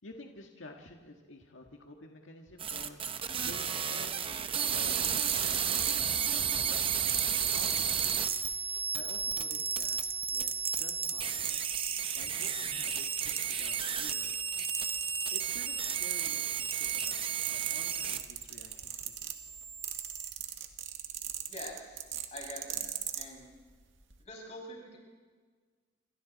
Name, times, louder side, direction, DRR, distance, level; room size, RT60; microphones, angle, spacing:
voice 1, 0.0-3.0 3.5-3.6 3.9-4.3 4.7-6.8 7.5-8.3 8.9-10.0 10.3-11.6 12.1-14.6 15.3-19.3, left 2 dB, 85° left, 2 dB, 1.8 m, -51 dB
sound 1, 2.6-18.4 18.7-20.3, right 7 dB, 30° right, 0.9 m, -33 dB
sound 2, 4.8-6.4 7.1-8.8 9.2-14.2 14.6-15.6 15.8-23.3 24.0-24.2, right 11 dB, 80° right, 1.9 m, -37 dB
voice 2, 21.4-22.9 23.1-23.5 24.2-25.0, left 1 dB, 35° left, -1 dB, 6.6 m, -45 dB
28.0 x 26.0 x 4.2 m, 1.5 s
head